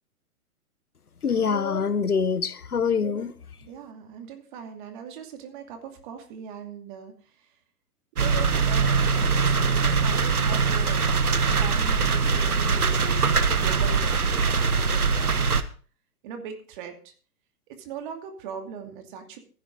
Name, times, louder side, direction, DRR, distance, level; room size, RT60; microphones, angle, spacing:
voice 1, 1.2-3.3, left 6 dB, 75° left, 1.0 m, -25 dB
voice 2, 3.6-7.1 8.1-11.1 11.4-15.6 16.2-17.1 17.7-19.4, right 7 dB, 35° right, 2.5 m, -39 dB
sound 1, 8.2-15.6, right 5 dB, 70° right, 1.4 m, -22 dB
15.5 x 9.9 x 3.9 m
figure-of-eight pair, 120°, 45 cm